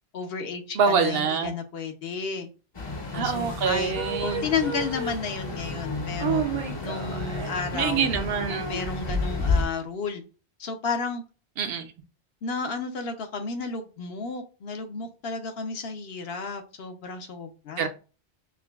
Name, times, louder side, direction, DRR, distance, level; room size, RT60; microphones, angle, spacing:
voice 1, 0.1-2.5 3.1-6.4 6.8-8.1 8.7-10.2 10.6-11.2 12.4-17.9, left 5 dB, 70° left, 0.9 m, -32 dB
voice 2, 0.8-1.5 3.1-4.4 7.7-8.7 11.6-11.9 17.8-17.9, right 6 dB, 65° right, 0.7 m, -25 dB
sound 1, 2.7-9.6, left 3 dB, 30° left, 0.6 m, -31 dB
sound 2, 3.3-5.4 6.0-7.7 8.1-8.2 8.5-8.9, right 5 dB, 50° right, 0.3 m, -32 dB
5.7 x 2.2 x 2.3 m
omnidirectional pair, 1.1 m